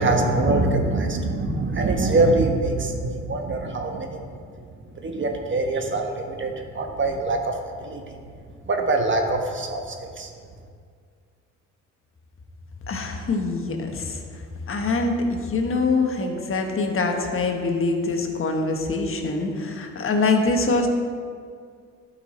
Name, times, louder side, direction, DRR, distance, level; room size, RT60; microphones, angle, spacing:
voice 1, 0.0-4.2 5.0-7.5 7.8-8.0 8.7-10.3, right 2 dB, 40° right, 3 dB, 1.3 m, -23 dB
voice 2, 12.9-14.2 14.7-20.9, left 3 dB, 45° left, 3 dB, 1.3 m, -24 dB
12.0 x 5.8 x 4.2 m, 2.2 s
cardioid pair, 90°, 30 cm